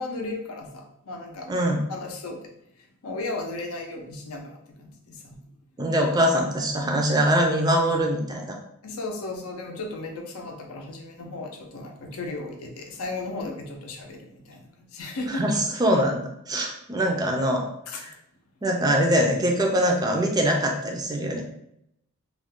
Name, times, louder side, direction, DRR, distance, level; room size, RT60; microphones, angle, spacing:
voice 1, 0.0-1.5 1.9-2.4 2.8-5.4 8.8-15.6 17.9-18.1, left 2 dB, 90° left, 2 dB, 0.5 m, -35 dB
voice 2, 1.5-1.8 5.8-8.6 15.3-17.7 18.0-18.1 18.6-21.4, equal, 20° right, 1 dB, 0.3 m, -23 dB
2.4 x 2.1 x 3.5 m, 0.76 s
head